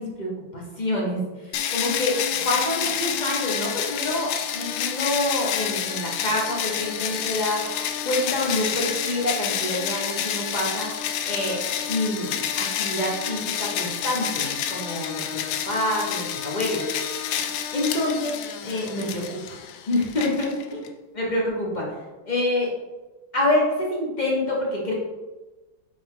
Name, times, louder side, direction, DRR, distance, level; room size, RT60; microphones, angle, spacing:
voice 1, 0.0-10.9 11.2-11.6 11.9-15.4 15.7-16.9 17.7-18.4 18.6-19.6 19.9-20.8 21.2-21.9 22.3-22.7 23.3-24.9, left 1 dB, 25° left, -3 dB, 1.2 m, -27 dB
sound 1, 1.5-20.9, left 9 dB, 75° left, 1.2 m, -29 dB
5.4 x 5.1 x 3.9 m, 1.2 s
omnidirectional pair, 2.2 m